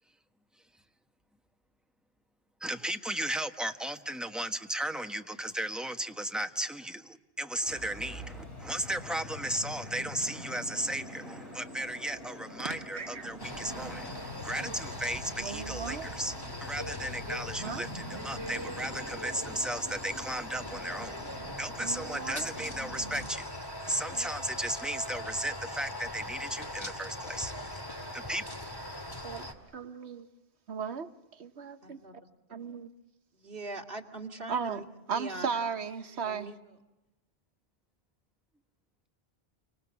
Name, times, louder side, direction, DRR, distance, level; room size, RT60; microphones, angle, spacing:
voice 1, 2.6-21.2 21.6-23.5 23.9-27.8 28.1-28.5, right 1 dB, ahead, 1.2 m, -35 dB
sound 1, 7.7-23.3, left 1 dB, 85° left, 4.0 m, -45 dB
voice 2, 12.6-13.3 13.7-14.0 14.6-14.8 15.4-16.2 17.6-17.8 21.8-22.5 24.1-24.3 29.2-29.5 29.7-30.3 30.7-31.1 31.4-32.0 32.5-32.9 34.5-34.8 35.1-36.5, right 6 dB, 85° right, 1.4 m, -36 dB
sound 2, 13.4-29.5, left 1 dB, 20° left, 2.3 m, -41 dB
voice 3, 33.4-34.8 35.2-35.5 36.3-36.5, right 2 dB, 60° right, 2.8 m, -40 dB
30.0 x 25.5 x 7.2 m
omnidirectional pair, 1.1 m